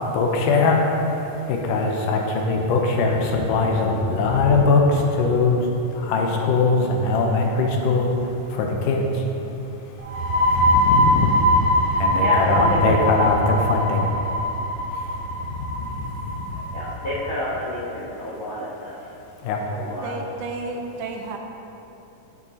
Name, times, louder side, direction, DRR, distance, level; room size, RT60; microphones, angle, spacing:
voice 1, 0.1-0.8 1.2-5.6 5.9-9.2 10.5-11.3 12.0-14.1 14.9-15.0 15.6-16.0 16.2-16.7 19.4-19.6, left 3 dB, 85° left, 1 dB, 2.3 m, -21 dB
sound 1, 10.0-17.4, equal, 60° right, 2.4 m, -22 dB
voice 2, 12.2-13.0 16.7-18.9 19.7-20.1, left 1 dB, 60° left, -8 dB, 1.4 m, -28 dB
voice 3, 20.0-21.4, right 3 dB, 80° right, 2 dB, 2.0 m, -32 dB
10.0 x 7.3 x 2.8 m, 2.9 s
omnidirectional pair, 3.8 m